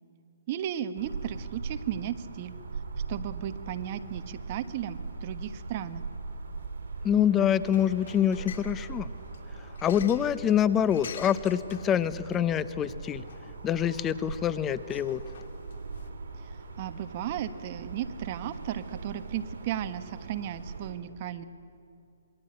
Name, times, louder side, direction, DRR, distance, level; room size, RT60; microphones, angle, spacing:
voice 1, 0.5-2.5 3.1-6.0 16.8-21.4, right 11 dB, 35° right, 10 dB, 1.3 m, -35 dB
sound 1, 0.9-20.9, right 4 dB, 70° right, 5.9 m, -40 dB
voice 2, 7.0-9.1 9.8-13.2 13.6-15.2, left 9 dB, 15° left, 15 dB, 0.7 m, -26 dB
sound 2, 7.6-16.1, left 7 dB, 60° left, 2.6 m, -48 dB
27.5 x 22.0 x 8.9 m, 2.6 s
hypercardioid pair, 155°, 0 cm